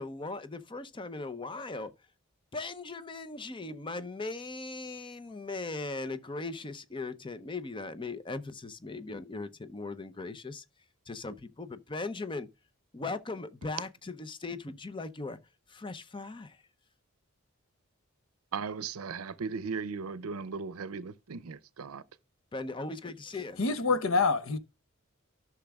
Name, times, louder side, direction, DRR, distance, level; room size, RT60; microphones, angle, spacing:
voice 1, 0.0-1.9 2.5-10.6 11.1-12.5 12.9-15.4 15.7-16.6 22.5-23.6, left 3 dB, 25° left, 0.6 m, -39 dB
voice 2, 18.5-22.0, right 5 dB, 85° right, 0.6 m, -37 dB
voice 3, 23.6-24.6, left 4 dB, 65° left, 0.8 m, -26 dB
13.5 x 5.9 x 2.3 m
head